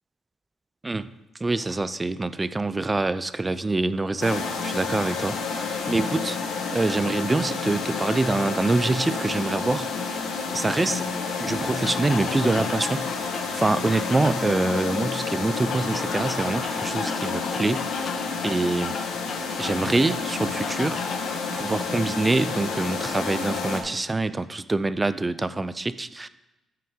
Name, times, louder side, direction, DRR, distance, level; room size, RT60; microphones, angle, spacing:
voice 1, 1.4-6.4 6.7-10.2 10.5-11.0 11.4-13.1 13.5-18.1 18.4-18.9 19.6-21.0 21.5-26.3, right 2 dB, 20° right, 15 dB, 0.4 m, -25 dB
sound 1, 4.2-23.8, left 4 dB, 85° left, 1.2 m, -30 dB
sound 2, 11.7-14.6 15.7-19.9 20.6-21.4, left 6 dB, 55° left, 0.5 m, -37 dB
9.5 x 6.0 x 3.7 m, 1.0 s
cardioid pair, 90°, 0 cm